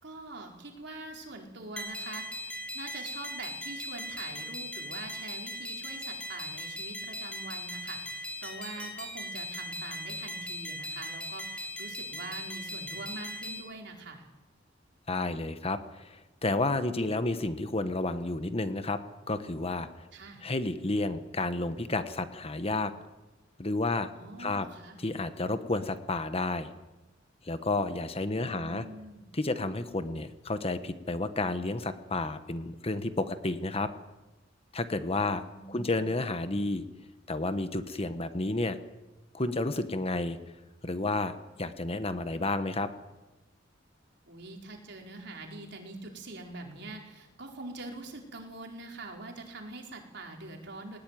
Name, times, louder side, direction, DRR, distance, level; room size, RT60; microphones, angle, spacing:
voice 1, 0.0-14.3 20.1-20.4 24.1-25.0 28.3-29.3 35.4-36.1 44.3-51.0, right 2 dB, 65° right, 1 dB, 4.6 m, -44 dB
sound 1, 1.8-13.6, equal, 5° left, 4.5 m, -39 dB
voice 2, 15.1-19.0 19.3-19.9 20.4-22.9 23.6-24.1 24.4-24.7 25.0-26.7 27.4-28.8 29.3-33.9 34.7-35.4 35.7-36.8 37.3-38.8 39.3-40.4 40.8-41.3 41.6-42.9, left 2 dB, 30° left, 10 dB, 1.2 m, -31 dB
19.5 x 18.5 x 9.3 m, 1.1 s
head